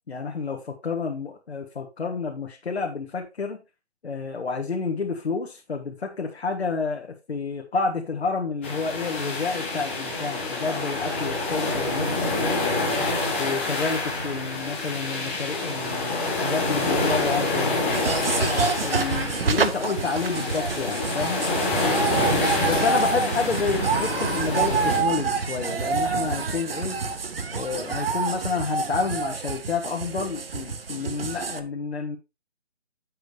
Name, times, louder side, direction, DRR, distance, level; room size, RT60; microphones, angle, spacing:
voice 1, 0.1-3.6 4.0-12.8 13.4-18.0 18.4-21.4 22.6-27.0 27.5-32.2, left 4 dB, 65° left, 1 dB, 1.5 m, -29 dB
sound 1, 8.6-25.0, left 2 dB, 10° left, 1.0 m, -27 dB
sound 2, 17.9-31.6, right 5 dB, 55° right, 1.0 m, -27 dB
7.6 x 6.8 x 3.3 m, 0.27 s
hypercardioid pair, 170°, 34 cm